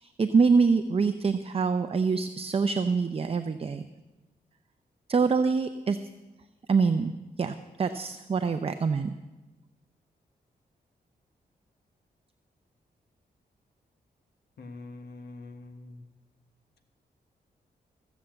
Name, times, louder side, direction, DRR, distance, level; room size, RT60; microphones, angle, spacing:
voice 1, 0.0-3.8 5.1-6.0 6.7-7.1 7.4-9.1, right 5 dB, 35° right, 9 dB, 0.6 m, -25 dB
voice 2, 14.6-16.0, left 2 dB, 80° left, 7 dB, 1.4 m, -44 dB
15.5 x 7.1 x 7.7 m, 1.1 s
cardioid pair, 75°, 17 cm